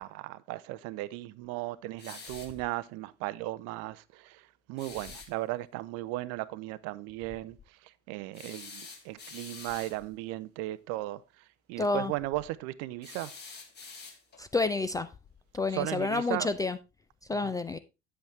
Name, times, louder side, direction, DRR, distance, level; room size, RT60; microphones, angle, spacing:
voice 1, 0.0-13.3 15.7-16.5 17.3-17.5, right 17 dB, 45° right, 0.6 m, -36 dB
sound 1, 2.0-2.6 4.8-5.3 8.3-10.0 13.0-14.5, left 4 dB, 30° left, 2.3 m, -46 dB
voice 2, 11.8-12.1 14.4-15.1 15.5-16.8 17.3-17.8, left 3 dB, 10° left, 0.4 m, -29 dB
9.1 x 7.8 x 3.2 m
figure-of-eight pair, 70°, 34 cm